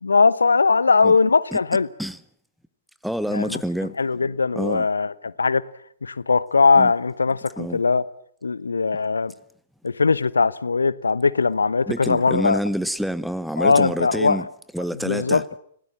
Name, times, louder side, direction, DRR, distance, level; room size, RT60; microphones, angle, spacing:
voice 1, 0.0-1.9 3.3-3.6 4.0-5.6 6.0-8.0 8.4-9.3 9.8-12.6 13.6-14.5 15.0-15.4, left 4 dB, 75° left, 0.9 m, -20 dB
voice 2, 3.0-3.9 4.5-4.9 6.8-6.9 7.6-7.8 11.9-14.5 14.7-15.4, equal, ahead, 0.9 m, -27 dB
29.5 x 17.0 x 7.5 m
figure-of-eight pair, 110°, 0 cm